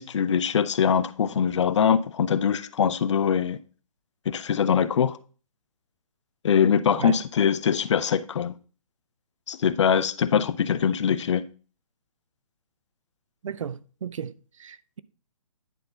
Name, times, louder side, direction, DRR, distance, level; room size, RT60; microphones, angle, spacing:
voice 1, 0.0-3.6 4.3-5.2 6.4-8.5 9.5-11.4, left 7 dB, 55° left, 0.5 m, -23 dB
voice 2, 13.4-15.0, right 7 dB, 65° right, 0.5 m, -35 dB
9.9 x 4.3 x 3.8 m
figure-of-eight pair, 135°, 18 cm